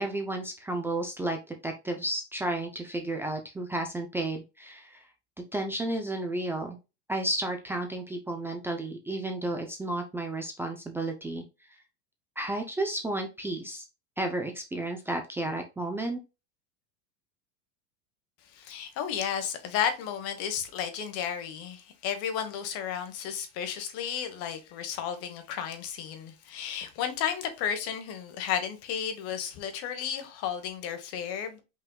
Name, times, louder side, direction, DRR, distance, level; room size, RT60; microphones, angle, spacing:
voice 1, 0.0-5.0 5.5-6.8 7.1-11.4 12.4-13.8 14.2-16.2, right 1 dB, 10° right, 0.5 m, -32 dB
voice 2, 18.5-31.6, left 8 dB, 50° left, 1.2 m, -33 dB
5.3 x 3.9 x 2.2 m
supercardioid pair, 145°, 30 cm